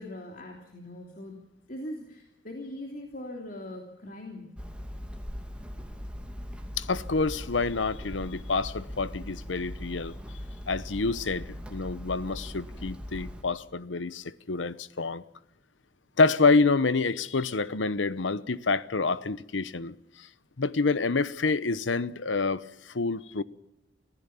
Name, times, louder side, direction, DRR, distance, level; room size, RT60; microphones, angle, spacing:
voice 1, 0.0-1.4 1.7-4.6, left 1 dB, 50° left, 3.0 m, -41 dB
Hammer, 4.6-13.4, equal, 5° right, 2.5 m, -40 dB
voice 2, 6.8-10.2 10.7-11.4 11.7-15.2 16.2-20.3 20.6-23.4, left 4 dB, 85° left, 0.9 m, -27 dB
25.5 x 16.0 x 7.1 m
head